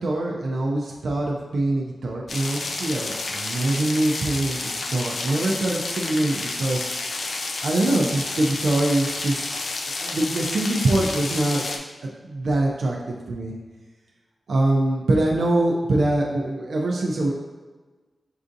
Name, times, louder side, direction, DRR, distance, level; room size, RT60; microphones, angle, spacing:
voice 1, 0.0-6.9 7.6-9.4 10.0-11.7 12.0-13.0 13.3-13.5 14.5-17.3, right 2 dB, 80° right, -2 dB, 0.4 m, -23 dB
sound 1, 2.3-11.8, left 3 dB, 70° left, 0.4 m, -30 dB
5.5 x 2.6 x 2.5 m, 1.3 s
wide cardioid pair, 90°, 0 cm